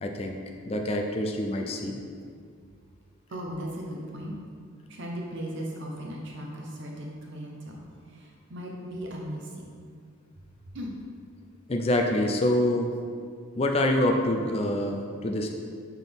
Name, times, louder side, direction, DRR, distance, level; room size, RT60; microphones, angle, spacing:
voice 1, 0.0-2.0 11.7-12.9 13.6-15.5, left 1 dB, 30° left, 2 dB, 0.4 m, -26 dB
voice 2, 3.3-4.3 4.9-9.7 10.7-11.0, equal, 60° right, -2 dB, 0.9 m, -37 dB
6.0 x 5.8 x 3.5 m, 2.1 s
head